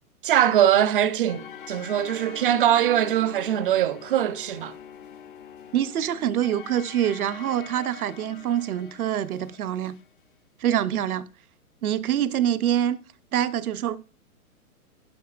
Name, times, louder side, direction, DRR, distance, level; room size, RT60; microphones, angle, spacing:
voice 1, 0.2-4.7, right 11 dB, 40° right, 0.5 m, -22 dB
sound 1, 1.3-10.1, left 8 dB, 40° left, 0.4 m, -44 dB
voice 2, 5.7-10.0 10.6-11.3 11.8-13.0 13.3-14.0, right 10 dB, 70° right, 0.7 m, -25 dB
9.9 x 5.7 x 2.4 m
hypercardioid pair, 145°, 45 cm